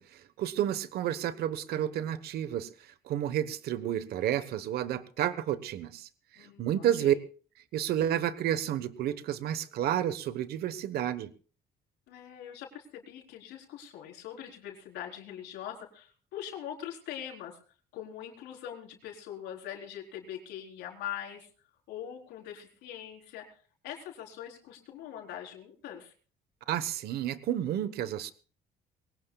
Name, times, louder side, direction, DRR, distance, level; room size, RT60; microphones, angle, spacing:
voice 1, 0.0-7.1 7.7-11.3 26.7-28.3, right 11 dB, 70° right, 14 dB, 1.2 m, -31 dB
voice 2, 6.4-7.2 12.1-17.6 17.9-21.5 21.9-23.6 23.8-26.1, left 10 dB, 90° left, 1 dB, 4.3 m, -42 dB
22.5 x 18.5 x 2.4 m, 0.39 s
cardioid pair, 110°, 17 cm